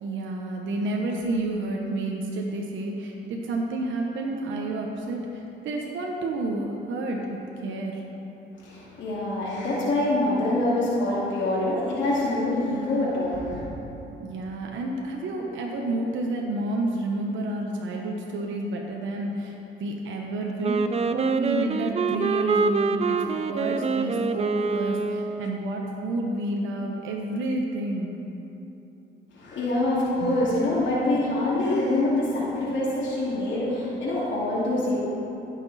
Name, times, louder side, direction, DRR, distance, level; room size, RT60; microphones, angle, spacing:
voice 1, 0.0-7.3 7.6-8.0 14.2-28.1 30.2-30.8, right 2 dB, 75° right, 0 dB, 1.0 m, -30 dB
voice 2, 8.6-13.6 29.3-35.0, left 1 dB, 70° left, -8 dB, 2.5 m, -25 dB
Wind instrument woodwind instrument, 20.6-25.6, right 4 dB, 30° right, 0.5 m, -26 dB
16.0 x 6.1 x 4.2 m, 3.0 s
cardioid pair, 90°, 20 cm